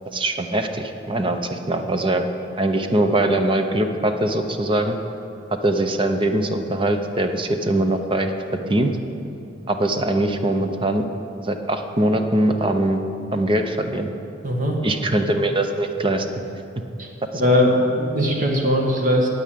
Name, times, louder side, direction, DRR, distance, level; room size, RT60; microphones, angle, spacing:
voice 1, 0.1-2.3 2.6-5.0 5.6-8.3 8.7-8.9 9.7-11.0 11.4-13.0 13.3-14.1 14.8-16.3, right 1 dB, 25° right, 6 dB, 0.7 m, -22 dB
voice 2, 14.4-14.8 17.0-17.1 17.3-19.3, left 1 dB, 45° right, 0 dB, 1.8 m, -19 dB
9.5 x 8.6 x 8.6 m, 2.6 s
head